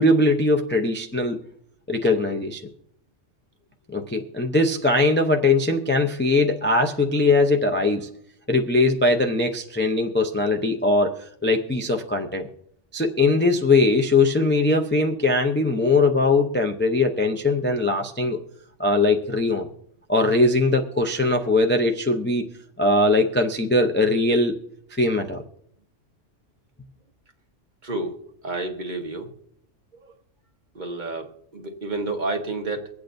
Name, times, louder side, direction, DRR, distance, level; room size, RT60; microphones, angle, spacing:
voice 1, 0.0-1.4 1.9-2.6 3.9-8.1 8.5-12.5 12.9-18.4 18.8-19.7 20.1-22.5 22.8-24.6 25.0-25.4, left 2 dB, 15° left, 3 dB, 0.4 m, -21 dB
voice 2, 27.8-28.1 28.4-29.3 30.7-32.9, right 2 dB, 40° right, 3 dB, 1.2 m, -30 dB
24.5 x 8.5 x 2.6 m, 0.69 s
omnidirectional pair, 1.2 m